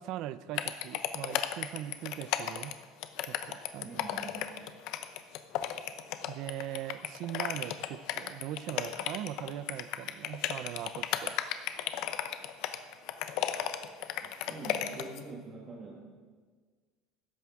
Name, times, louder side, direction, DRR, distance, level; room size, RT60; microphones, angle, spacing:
voice 1, 0.0-2.7 3.2-4.0 6.3-11.4, right 12 dB, 55° right, 15 dB, 0.4 m, -40 dB
sound 1, 0.6-15.2, left 11 dB, 60° left, 0.7 m, -34 dB
voice 2, 3.8-4.4 14.2-16.1, right 3 dB, 30° right, -3 dB, 1.4 m, -45 dB
13.5 x 10.5 x 3.6 m, 1.5 s
cardioid pair, 145°, 0 cm